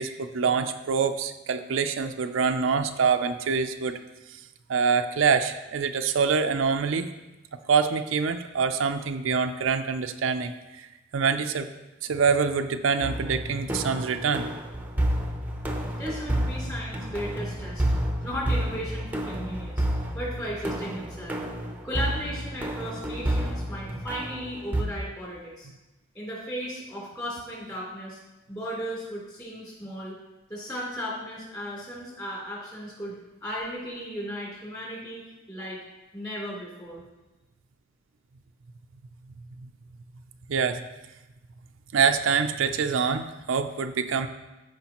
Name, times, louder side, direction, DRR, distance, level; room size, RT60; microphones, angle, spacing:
voice 1, 0.0-4.0 4.7-7.1 7.7-10.5 10.8-10.9 11.1-11.7 12.0-14.5 39.6-39.7 40.5-40.8 41.9-44.3, right 5 dB, 90° right, 8 dB, 0.5 m, -25 dB
sound 1, 13.0-24.8, right 1 dB, 10° right, 0.7 m, -30 dB
voice 2, 15.9-17.8 18.2-19.8 20.1-21.4 21.8-25.7 26.1-28.2 28.5-30.1 30.5-33.1 33.4-35.8 36.1-37.0, equal, 20° left, -5 dB, 3.1 m, -35 dB
14.0 x 5.0 x 2.9 m, 1.1 s
head